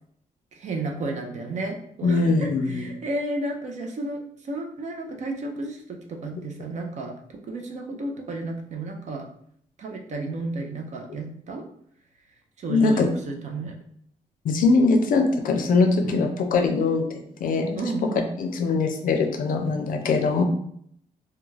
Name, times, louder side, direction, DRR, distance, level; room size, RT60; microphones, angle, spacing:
voice 1, 0.5-9.3 9.8-11.6 12.6-13.8 16.0-16.3 17.8-18.3, right 2 dB, 55° right, 2 dB, 0.5 m, -32 dB
voice 2, 2.0-2.8 12.7-13.1 14.4-17.8 18.4-20.4, left 3 dB, 70° left, 4 dB, 0.4 m, -22 dB
2.4 x 2.2 x 3.1 m, 0.67 s
cardioid pair, 105°, 15 cm